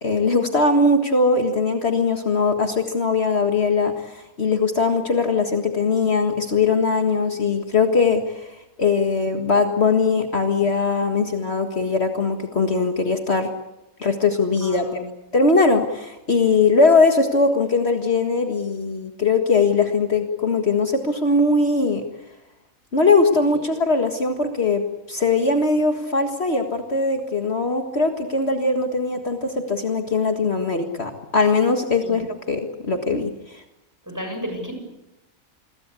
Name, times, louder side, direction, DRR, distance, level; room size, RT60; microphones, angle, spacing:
voice 1, 0.0-8.5 8.8-13.5 14.0-14.9 15.3-22.0 22.9-24.8 25.1-33.6, left 4 dB, 50° left, 4 dB, 2.0 m, -20 dB
voice 2, 14.6-15.0 23.5-23.6 32.0-32.2 34.0-34.7, equal, 10° right, 4 dB, 7.3 m, -32 dB
28.0 x 22.0 x 8.3 m, 0.94 s
omnidirectional pair, 1.5 m